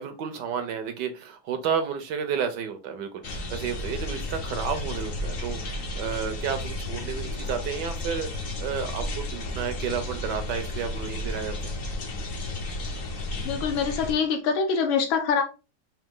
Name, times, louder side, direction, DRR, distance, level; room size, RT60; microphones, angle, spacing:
voice 1, 0.0-8.3 8.6-11.7, right 7 dB, 70° right, 1.1 m, -31 dB
sound 1, 3.2-14.1, left 2 dB, 55° left, 1.0 m, -33 dB
voice 2, 13.4-15.4, left 6 dB, 70° left, 1.7 m, -24 dB
4.9 x 2.8 x 3.6 m
omnidirectional pair, 2.3 m